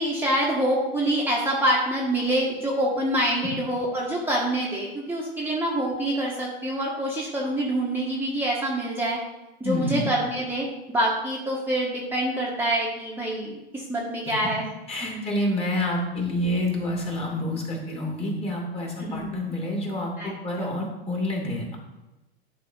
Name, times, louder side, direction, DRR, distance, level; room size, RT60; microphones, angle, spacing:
voice 1, 0.0-9.2 9.6-14.7 15.0-15.2 19.0-19.4 20.2-20.7, right 1 dB, 5° right, -5 dB, 1.7 m, -26 dB
voice 2, 9.6-10.1 14.3-14.4 14.9-21.8, left 1 dB, 20° left, 0 dB, 2.7 m, -28 dB
11.0 x 4.2 x 5.7 m, 1.0 s
hypercardioid pair, 110°, 32 cm